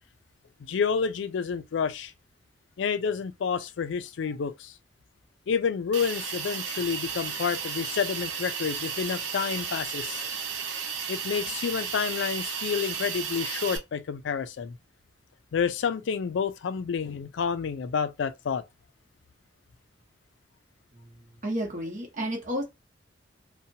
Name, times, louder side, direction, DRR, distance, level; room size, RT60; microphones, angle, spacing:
voice 1, 0.6-2.1 2.8-4.7 5.5-10.2 11.1-14.8 15.5-18.6, left 6 dB, 75° left, 0.4 m, -29 dB
Hiss, 5.9-13.8, right 6 dB, 70° right, 0.6 m, -33 dB
voice 2, 20.9-22.6, equal, 45° right, 0.9 m, -32 dB
2.7 x 2.1 x 2.7 m
head